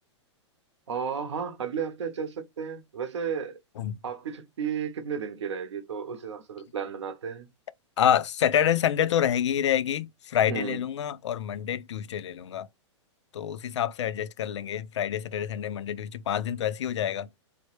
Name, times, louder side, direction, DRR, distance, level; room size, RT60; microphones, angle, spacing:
voice 1, 0.9-3.6 4.0-7.5 10.5-10.8, right 7 dB, 70° right, 0.8 m, -33 dB
voice 2, 8.0-12.7 13.3-17.3, left 9 dB, 70° left, 0.4 m, -27 dB
3.4 x 2.0 x 3.0 m
hypercardioid pair, 110°, 15 cm